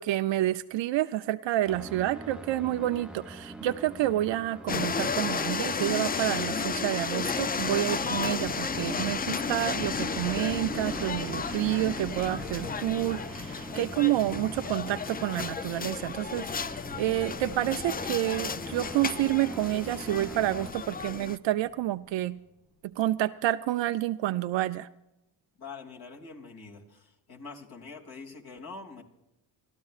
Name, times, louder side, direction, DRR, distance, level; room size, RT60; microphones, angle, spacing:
voice 1, 0.0-22.4 23.0-24.9, right 14 dB, 65° right, 10 dB, 0.6 m, -29 dB
sound 1, 1.7-20.7, right 1 dB, ahead, 0.8 m, -44 dB
sound 2, 4.7-21.4, left 5 dB, 20° left, 0.4 m, -33 dB
sound 3, 7.2-22.5, left 2 dB, 75° left, 5.1 m, -46 dB
voice 2, 25.6-29.0, left 4 dB, 50° left, 0 dB, 2.7 m, -45 dB
29.0 x 13.0 x 2.4 m, 0.92 s
cardioid pair, 90°, 47 cm